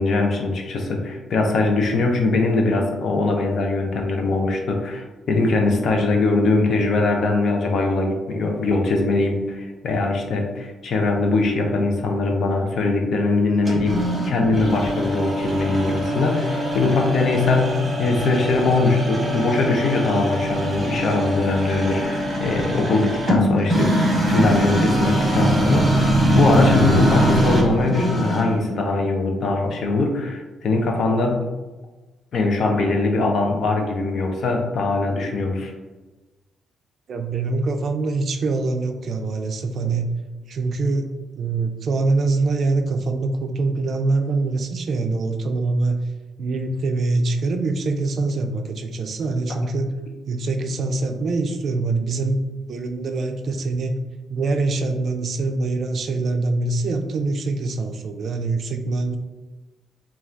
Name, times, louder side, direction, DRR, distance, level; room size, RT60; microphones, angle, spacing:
voice 1, 0.0-23.9 24.3-31.5 32.3-35.7, left 3 dB, 60° left, 2 dB, 0.5 m, -21 dB
sound 1, 13.7-28.7, right 1 dB, 25° right, 0.9 m, -22 dB
voice 2, 37.1-40.1 40.5-41.1 41.4-46.0 46.4-49.9 50.3-52.4 52.7-54.0 54.3-59.2, right 3 dB, 55° right, 5 dB, 0.3 m, -24 dB
3.2 x 2.3 x 2.4 m, 1.2 s
cardioid pair, 105°, 0 cm